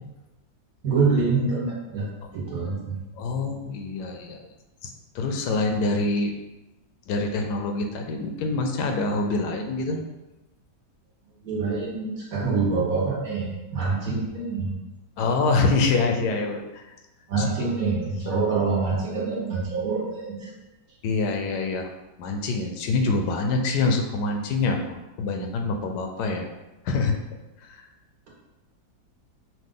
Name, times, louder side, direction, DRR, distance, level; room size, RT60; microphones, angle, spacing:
voice 1, 0.8-3.0 11.4-14.8 15.2-15.3 17.3-20.5, right 4 dB, 60° right, -4 dB, 1.5 m, -26 dB
voice 2, 3.1-4.5 4.8-6.3 7.1-10.0 15.2-16.9 17.4-17.5 21.0-21.9 22.2-26.5 26.8-27.1 27.6-27.9, left 3 dB, 80° left, 3 dB, 1.1 m, -25 dB
5.8 x 2.4 x 3.7 m, 1.0 s
omnidirectional pair, 1.8 m